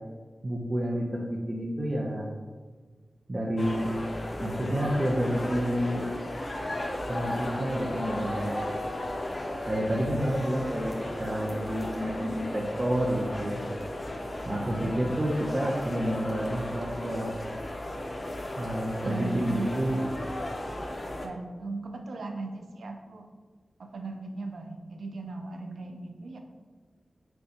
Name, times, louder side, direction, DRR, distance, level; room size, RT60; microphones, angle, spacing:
voice 1, 0.4-2.3 3.3-3.9 4.4-6.1 7.1-8.7 9.6-13.7 14.5-17.3 18.6-20.0, equal, 35° right, -3 dB, 0.6 m, -29 dB
sound 1, 3.6-21.3, left 1 dB, 45° left, 0.5 m, -35 dB
voice 2, 19.0-19.9 21.1-23.3 23.8-26.4, right 3 dB, 85° right, 5 dB, 0.4 m, -37 dB
6.4 x 2.3 x 2.8 m, 1.4 s
cardioid pair, 60°, 0 cm